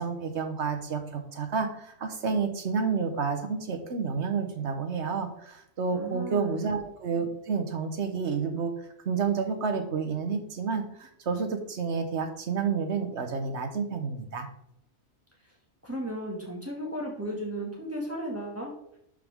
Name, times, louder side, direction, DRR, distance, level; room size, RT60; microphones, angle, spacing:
voice 1, 0.0-8.7 9.0-14.5, right 5 dB, 70° right, 6 dB, 1.3 m, -30 dB
voice 2, 5.9-6.6 15.8-18.7, equal, 10° right, -2 dB, 1.8 m, -35 dB
11.0 x 5.2 x 3.6 m, 0.75 s
omnidirectional pair, 1.2 m